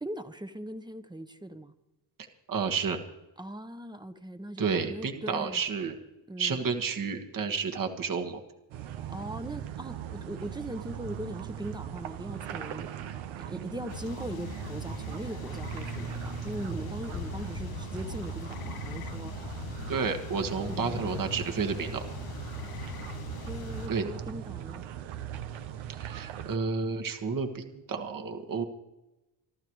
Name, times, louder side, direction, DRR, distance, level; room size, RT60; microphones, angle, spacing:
voice 1, 0.0-1.7 3.4-5.6 6.3-6.6 9.1-13.1 13.5-19.7 20.6-21.0 22.7-23.0 23.5-24.8, right 1 dB, 10° right, 9 dB, 1.1 m, -40 dB
voice 2, 2.5-3.0 4.6-6.0 6.4-8.4 19.9-22.0 23.9-24.0 26.0-28.6, right 5 dB, 45° right, 4 dB, 1.7 m, -31 dB
sound 1, 8.7-26.6, right 10 dB, 80° right, 1.1 m, -39 dB
sound 2, 13.9-23.9, left 12 dB, 50° left, 0.6 m, -42 dB
29.0 x 12.0 x 3.2 m, 0.98 s
cardioid pair, 90°, 46 cm